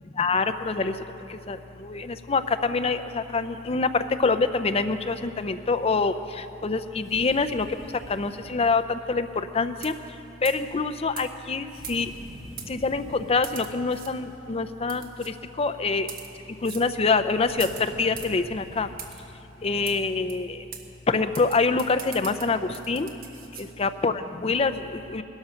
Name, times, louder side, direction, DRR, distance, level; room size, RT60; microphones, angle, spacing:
voice 1, 0.2-0.9 1.5-1.6 1.8-3.9 4.2-6.1 6.6-7.7 8.1-9.3 9.5-9.9 10.4-12.1 12.7-15.1 15.6-16.1 16.6-17.7 18.0-18.9 19.6-20.6 21.1-22.6 22.9-23.1 23.6-25.2, left 4 dB, 35° left, 10 dB, 0.5 m, -25 dB
sound 1, 7.0-8.5 11.7-13.5 17.3-19.0, equal, ahead, 1.9 m, -46 dB
sound 2, 9.7-10.1 10.4-10.7 11.2-11.3 11.8-12.2 12.6-12.7 13.4-14.1 14.9-15.3 16.0-16.3 16.6-16.9 17.6-18.4 19.0-19.2 19.9-20.0 20.3-20.4 20.7-20.8 21.3-23.7, right 7 dB, 50° right, 1.2 m, -40 dB
19.0 x 13.0 x 5.7 m, 2.9 s
head